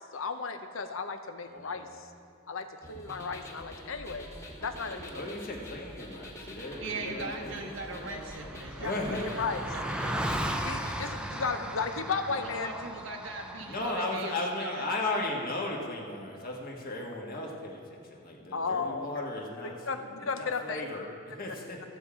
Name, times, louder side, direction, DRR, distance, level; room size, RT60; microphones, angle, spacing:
voice 1, 0.1-2.1 2.5-4.3 4.6-5.2 8.8-8.9 9.4-9.6 10.6-12.7 18.5-19.1 19.6-20.9, left 4 dB, 75° left, 8 dB, 0.8 m, -34 dB
voice 2, 1.4-2.0 5.1-7.5 8.0-8.2 8.8-9.4 13.7-21.8, left 2 dB, 45° left, -1 dB, 1.6 m, -36 dB
sound 1, 2.8-11.1, left 1 dB, 15° left, 1.3 m, -45 dB
Car passing by, 6.8-6.9 7.1-13.9, right 1 dB, 5° right, 0.6 m, -36 dB
voice 3, 6.8-10.4 12.3-14.9, right 3 dB, 65° right, 1 dB, 1.0 m, -40 dB
15.0 x 7.2 x 5.0 m, 2.3 s
head